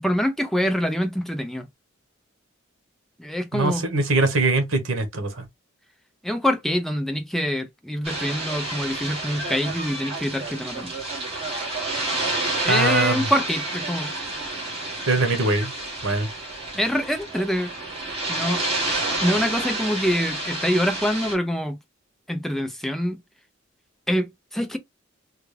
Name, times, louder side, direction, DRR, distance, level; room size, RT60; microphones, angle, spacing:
voice 1, 0.0-1.7 3.2-3.8 6.2-10.9 12.6-14.1 16.7-17.7 18.3-18.6 19.2-21.8 22.3-23.2 24.1-24.8, equal, ahead, 0.5 m, -25 dB
voice 2, 3.5-5.4 12.6-13.3 15.1-15.7 16.0-16.3, right 2 dB, 85° right, 1.1 m, -22 dB
sound 1, 8.0-21.3, right 2 dB, 30° right, 1.5 m, -29 dB
3.4 x 2.4 x 3.2 m
head